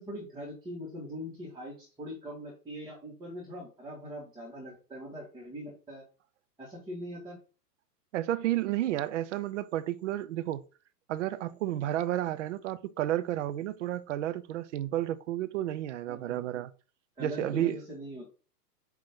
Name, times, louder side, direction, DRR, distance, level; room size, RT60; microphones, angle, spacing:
voice 1, 0.0-6.0 6.6-7.4 16.1-16.5 17.2-18.3, equal, 10° right, 1.9 m, -42 dB
voice 2, 8.1-10.6 11.1-16.7 17.2-17.8, right 13 dB, 50° right, 0.6 m, -31 dB
8.8 x 3.2 x 3.7 m
hypercardioid pair, 125°, 49 cm